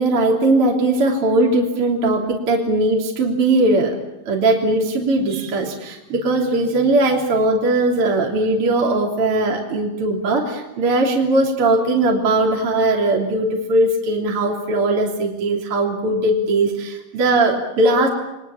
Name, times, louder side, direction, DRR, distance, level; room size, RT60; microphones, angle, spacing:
voice 1, 0.0-4.0 4.3-18.1, right 2 dB, 35° right, -1 dB, 3.8 m, -19 dB
30.0 x 22.5 x 7.3 m, 0.97 s
omnidirectional pair, 4.6 m